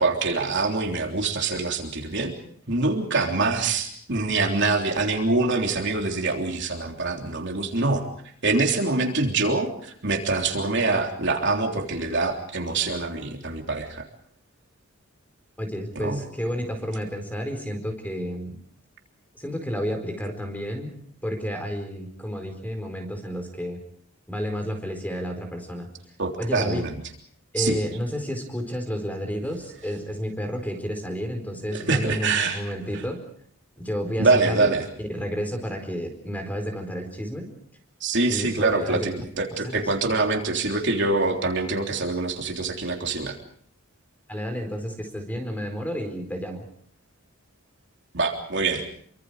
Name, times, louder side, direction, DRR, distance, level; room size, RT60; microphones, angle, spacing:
voice 1, 0.0-2.3 2.7-8.1 8.4-14.0 15.9-16.2 26.2-27.0 27.6-27.8 31.7-32.6 34.2-34.8 38.0-43.4 48.1-48.9, right 3 dB, 55° right, 2 dB, 3.4 m, -25 dB
voice 2, 15.6-18.6 19.3-23.8 24.3-25.9 26.4-26.8 27.5-33.2 33.8-34.7 35.1-37.5 38.3-39.0 39.6-39.8 44.3-46.6, equal, 5° left, 6 dB, 4.5 m, -31 dB
28.0 x 24.5 x 5.0 m, 0.62 s
head